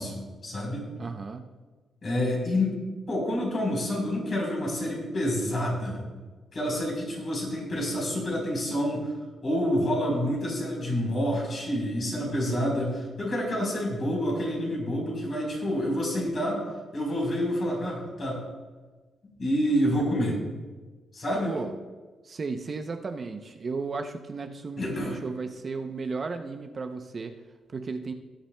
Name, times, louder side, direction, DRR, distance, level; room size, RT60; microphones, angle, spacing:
voice 1, 0.0-0.9 2.0-2.8 3.1-6.0 6.5-9.1 9.4-16.6 16.9-18.4 19.4-20.4 21.1-21.5 24.8-25.2, equal, 40° left, -1 dB, 3.9 m, -28 dB
voice 2, 1.0-1.4 21.5-21.7 22.2-27.4 27.7-28.1, right 4 dB, 35° right, 6 dB, 0.6 m, -34 dB
18.0 x 10.0 x 2.2 m, 1.3 s
cardioid pair, 140°, 0 cm